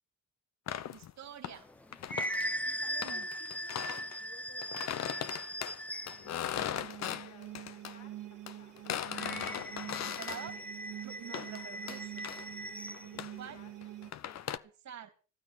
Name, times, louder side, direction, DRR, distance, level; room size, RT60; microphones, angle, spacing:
sound 1, 0.7-1.6 1.9-2.5 3.0-4.2 4.6-8.0 8.5-10.5 11.3-11.6 11.9-12.5 12.9-14.6, left 10 dB, 60° left, 1.0 m, -39 dB
voice 1, 0.9-1.6 2.7-2.8 3.0-3.3 6.5-6.9 10.0-10.5 11.0-12.4 13.4-13.6 14.8-15.1, right 9 dB, 65° right, 6 dB, 3.4 m, -47 dB
sound 2, 1.6-6.4 9.1-13.1, equal, 5° left, 0.8 m, -39 dB
voice 2, 2.8-5.7 6.1-6.7 7.1-8.2 8.5-8.7 10.3-10.7 11.3-11.8 13.0-13.7 14.2-14.7, left 7 dB, 85° left, 2 dB, 3.6 m, -59 dB
sound 3, 6.2-14.1, right 14 dB, 80° right, 1.2 m, -47 dB
15.5 x 13.0 x 5.5 m, 0.35 s
cardioid pair, 90°, 30 cm